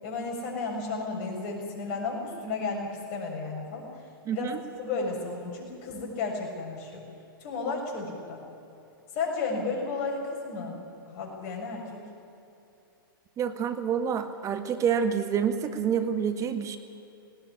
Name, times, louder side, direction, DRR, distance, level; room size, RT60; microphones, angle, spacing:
voice 1, 0.0-3.9 4.3-7.0 7.4-8.4 9.1-12.0, left 4 dB, 45° left, 0 dB, 6.9 m, -33 dB
voice 2, 4.2-4.6 13.4-16.8, right 7 dB, 25° right, 10 dB, 1.7 m, -28 dB
19.0 x 18.5 x 10.0 m, 2.8 s
hypercardioid pair, 120°, 12 cm